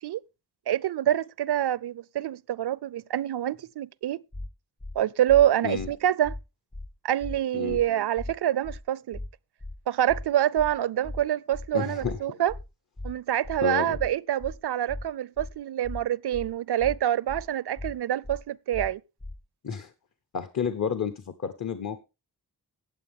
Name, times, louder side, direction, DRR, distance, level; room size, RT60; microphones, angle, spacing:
voice 1, 0.7-4.2 5.0-6.3 7.0-9.2 9.9-12.5 13.0-19.0, right 11 dB, 80° right, 0.5 m, -26 dB
sound 1, 4.3-4.5 4.8-5.0 5.3-5.4 5.8-5.9 6.2-6.4 6.7-6.9 7.2-7.4 7.7-7.8 8.2-8.3 8.6-8.8 9.1-9.3 9.6-9.8 10.1-10.2 10.6-10.7 11.0-11.2 11.5-11.7 12.0-12.2 12.5-12.6 13.0-13.1 13.4-13.6 13.9-14.1 14.4-14.6 14.9-15.0 15.4-15.5 15.8-16.0 16.3-16.5 16.8-17.0 17.3-17.4 17.8-17.9 18.2-18.4 18.7-18.9 19.2-19.4, left 2 dB, 15° left, 0.5 m, -37 dB
voice 2, 11.7-12.2 13.6-14.0 19.6-19.9 20.3-22.0, left 6 dB, 45° left, 0.8 m, -30 dB
15.0 x 8.7 x 3.6 m
wide cardioid pair, 125°, 39 cm